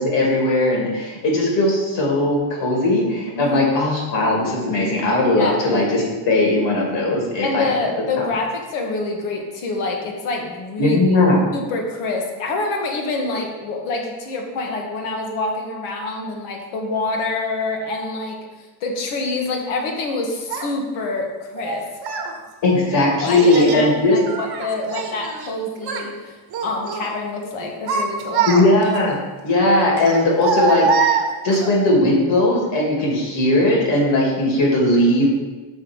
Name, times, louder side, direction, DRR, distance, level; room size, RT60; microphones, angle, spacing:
voice 1, 0.0-7.7 10.8-11.4 22.6-24.2 28.5-29.2 29.4-31.2 31.4-35.3, left 1 dB, 60° left, -2 dB, 2.4 m, -18 dB
voice 2, 3.3-3.7 5.3-5.6 7.4-11.0 11.5-18.4 18.8-21.9 23.2-28.5, left 3 dB, 85° left, 1 dB, 1.4 m, -26 dB
Child speech kid speaking, 20.5-20.7 21.6-22.3 23.2-23.8 24.3-25.5 25.8-26.1 26.5-27.1 27.6-29.0 30.0-31.7, right 5 dB, 50° right, 1.1 m, -23 dB
6.1 x 3.9 x 6.1 m, 1.2 s
cardioid pair, 125°, 48 cm